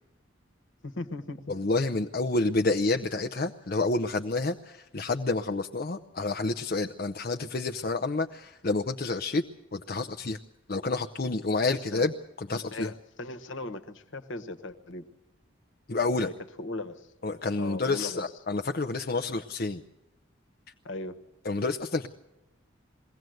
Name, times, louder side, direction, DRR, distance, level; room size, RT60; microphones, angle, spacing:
voice 1, 0.8-1.6 11.9-12.1 12.5-15.1 16.2-16.3 16.6-17.1 17.6-18.2 20.8-21.2, left 2 dB, 65° left, 10 dB, 1.4 m, -38 dB
voice 2, 1.5-9.4 9.7-10.4 10.7-12.1 12.4-12.9 15.9-16.3 17.2-19.8 21.4-22.1, left 3 dB, 45° left, 5 dB, 0.6 m, -29 dB
22.0 x 17.5 x 7.8 m, 0.99 s
head